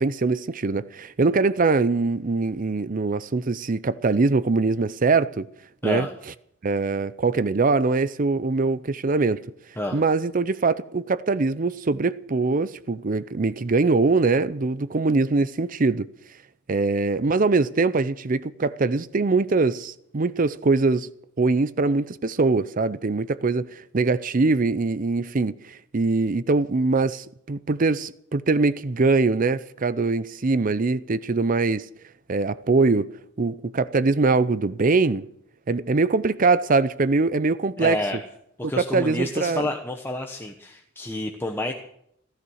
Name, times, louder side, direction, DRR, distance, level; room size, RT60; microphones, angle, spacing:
voice 1, 0.0-5.5 5.8-6.1 6.6-9.5 9.9-16.1 16.7-21.1 21.4-31.8 32.3-33.1 33.4-35.2 35.7-38.0 38.8-39.7, right 3 dB, 40° right, 0.5 m, -22 dB
voice 2, 5.8-6.1 9.8-10.0 37.8-38.2 38.6-41.7, left 1 dB, 10° left, 1.1 m, -29 dB
15.5 x 14.0 x 6.4 m
head